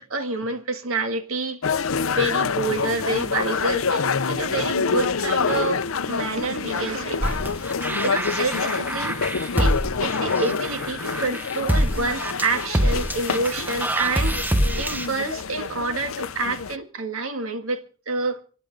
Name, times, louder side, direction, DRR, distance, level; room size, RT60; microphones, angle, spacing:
voice 1, 0.0-1.6 2.1-7.4 8.0-9.2 9.6-14.4 14.8-18.4, right 3 dB, 85° right, 1.8 m, -28 dB
sound 1, 1.6-16.8, left 5 dB, 80° left, 0.7 m, -27 dB
sound 2, 7.2-15.1, right 1 dB, 10° right, 0.9 m, -25 dB
27.0 x 11.0 x 3.9 m
head